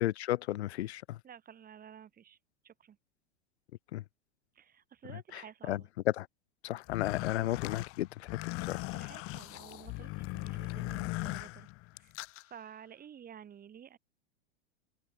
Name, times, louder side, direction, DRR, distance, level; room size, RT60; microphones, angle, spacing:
voice 1, 0.0-1.2 3.9-4.0 5.3-5.4 5.7-5.8 6.2-6.3 6.6-8.8, left 15 dB, 75° left, 0.5 m, -34 dB
voice 2, 1.2-2.4 2.6-3.0 4.5-5.9 8.9-11.7 12.0-14.0, right 8 dB, 25° right, 5.7 m, -52 dB
sound 1, 6.8-12.4, left 23 dB, 40° left, 1.2 m, -39 dB
open air
hypercardioid pair, 95°, 33 cm